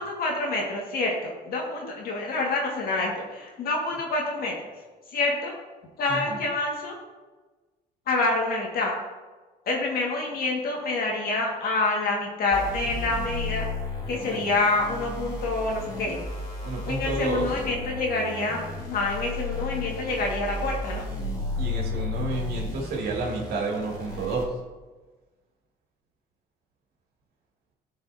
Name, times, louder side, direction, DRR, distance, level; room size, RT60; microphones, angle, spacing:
voice 1, 0.0-4.5 5.1-5.5 6.0-7.0 8.1-8.9 9.6-13.7 14.1-16.2 16.8-18.6 18.9-21.0, left 3 dB, 60° left, -1 dB, 1.8 m, -27 dB
voice 2, 6.1-6.4 16.6-17.5 21.6-24.5, right 3 dB, 70° right, -2 dB, 2.5 m, -30 dB
sound 1, 12.5-24.4, left 2 dB, 25° left, 2.3 m, -33 dB
14.0 x 5.5 x 2.8 m, 1.3 s
cardioid pair, 110°, 17 cm